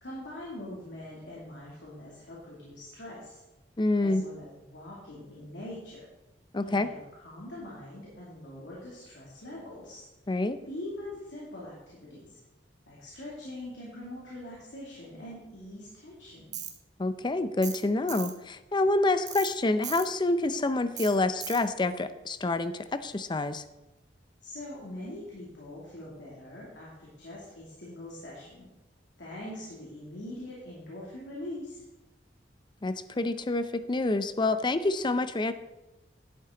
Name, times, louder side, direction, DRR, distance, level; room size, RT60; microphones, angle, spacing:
voice 1, 0.0-3.4 4.0-6.0 6.6-10.1 10.6-12.3 12.9-16.6 24.4-28.7 29.2-31.8, left 1 dB, 80° left, -6 dB, 2.6 m, -43 dB
voice 2, 3.8-4.2 6.5-6.9 10.3-10.6 17.0-23.6 32.8-35.5, left 2 dB, 25° left, 12 dB, 0.5 m, -27 dB
Tools, 16.5-16.7 17.6-17.8 18.1-18.3 19.3-19.5 19.8-20.1 21.0-21.1 21.4-21.6, right 9 dB, 45° right, 1.2 m, -37 dB
11.0 x 8.6 x 3.8 m, 1.0 s
head